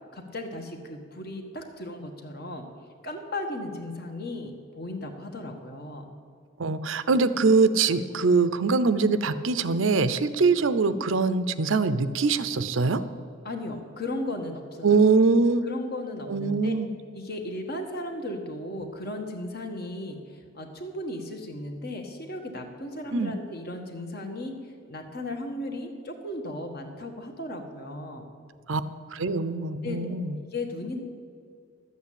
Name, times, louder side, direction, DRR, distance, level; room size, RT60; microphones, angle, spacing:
voice 1, 0.1-2.7 3.0-6.1 13.4-15.0 15.6-16.7 17.1-24.5 24.9-28.2 29.8-31.0, left 1 dB, 50° left, 4 dB, 1.5 m, -36 dB
voice 2, 6.6-13.0 14.8-15.6 16.3-16.9 23.1-23.3 28.7-28.8 29.1-30.3, right 4 dB, 75° right, 13 dB, 0.6 m, -23 dB
12.0 x 8.2 x 8.6 m, 2.2 s
head